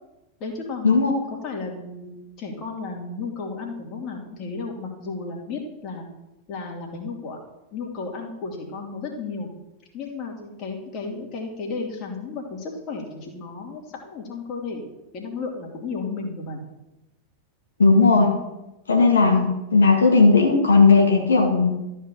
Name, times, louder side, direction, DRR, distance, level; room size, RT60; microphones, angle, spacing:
voice 1, 0.4-0.9 1.3-6.1 6.5-7.4 7.7-9.5 9.9-16.6, left 4 dB, 35° left, 0 dB, 2.9 m, -33 dB
voice 2, 17.8-18.3 18.9-21.7, left 4 dB, 70° left, 0 dB, 2.0 m, -16 dB
13.5 x 4.8 x 7.6 m, 0.96 s
figure-of-eight pair, 90°, 0 cm